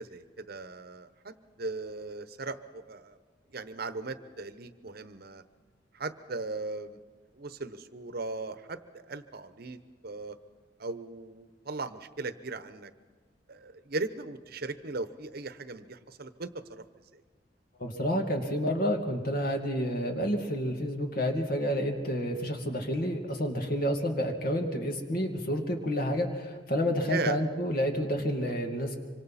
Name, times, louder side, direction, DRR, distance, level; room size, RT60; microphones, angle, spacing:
voice 1, 0.0-3.2 3.5-5.4 5.9-7.0 7.4-10.4 10.8-12.9 13.5-16.8 27.1-27.4, right 3 dB, 55° right, 11 dB, 1.0 m, -38 dB
voice 2, 17.8-29.0, equal, 50° left, 2 dB, 2.4 m, -29 dB
25.5 x 25.0 x 4.3 m, 1.5 s
head